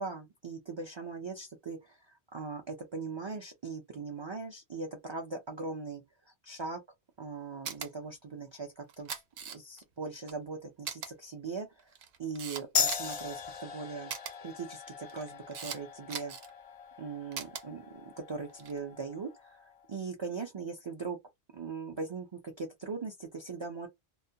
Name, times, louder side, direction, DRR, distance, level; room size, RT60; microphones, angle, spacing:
voice 1, 0.0-2.0 2.3-6.0 6.4-6.8 7.2-9.1 9.5-11.7 12.2-14.1 14.4-16.3 17.0-21.2 21.5-23.9, right 4 dB, 45° right, 0.3 m, -40 dB
Camera, 7.6-7.9 8.9-9.8 10.3-10.4 10.8-11.1 11.8-13.2 14.1-14.3 15.1-15.8 16.1-16.5 17.3-17.6 18.5-18.8, right 7 dB, 75° right, 0.9 m, -39 dB
sound 1, 12.7-19.8, left 6 dB, 50° left, 0.4 m, -38 dB
2.3 x 2.1 x 2.7 m
omnidirectional pair, 1.1 m